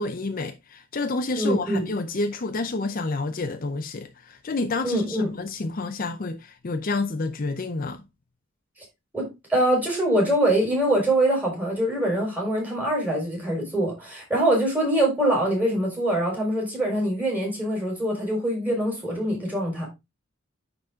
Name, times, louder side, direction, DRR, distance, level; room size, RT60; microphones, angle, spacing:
voice 1, 0.0-8.0, left 3 dB, 45° left, 0.6 m, -29 dB
voice 2, 1.4-1.8 4.8-5.3 9.1-19.9, right 1 dB, 10° right, 4.0 m, -24 dB
9.8 x 4.0 x 3.6 m
head